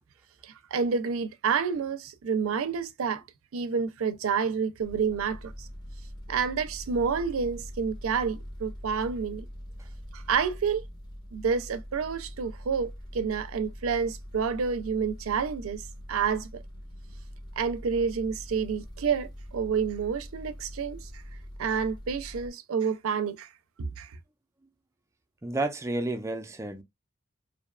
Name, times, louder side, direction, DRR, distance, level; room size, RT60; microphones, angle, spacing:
voice 1, 0.4-3.2 3.5-5.7 6.3-9.5 10.1-10.8 11.3-16.5 17.6-21.1 21.6-23.5 23.8-24.1, right 6 dB, 85° right, 0.4 m, -29 dB
sound 1, 4.8-22.5, equal, 20° left, 0.6 m, -43 dB
voice 2, 25.4-26.8, right 2 dB, 15° right, 0.3 m, -31 dB
2.6 x 2.2 x 2.3 m
head